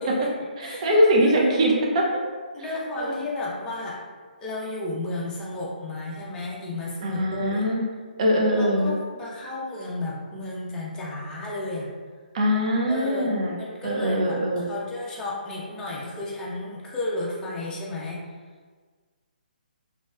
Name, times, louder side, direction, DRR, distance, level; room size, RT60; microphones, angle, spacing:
voice 1, 0.6-2.1 2.6-3.3 7.0-7.8 8.2-8.9 12.3-13.6 13.8-14.7, equal, 40° right, -2 dB, 0.5 m, -22 dB
voice 2, 1.2-1.5 2.5-4.0 4.4-7.6 8.5-11.9 12.9-13.3 13.6-18.2, left 2 dB, 10° left, -5 dB, 0.5 m, -33 dB
3.0 x 2.7 x 2.2 m, 1.5 s
figure-of-eight pair, 135°, 5 cm